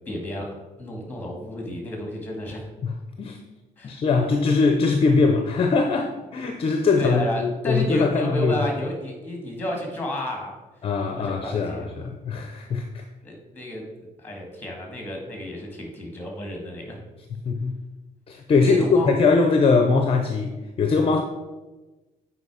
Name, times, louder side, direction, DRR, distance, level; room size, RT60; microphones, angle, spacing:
voice 1, 0.0-2.7 3.8-4.0 6.0-6.1 6.6-10.6 11.1-12.1 12.6-12.7 13.2-13.8 14.2-17.0 18.6-19.1, left 1 dB, 10° left, 1 dB, 1.9 m, -32 dB
voice 2, 2.8-3.4 3.8-8.7 10.8-13.0 17.4-17.7 18.3-21.2, left 4 dB, 40° left, 5 dB, 0.6 m, -21 dB
8.1 x 4.8 x 4.8 m, 1.1 s
cardioid pair, 155°, 15 cm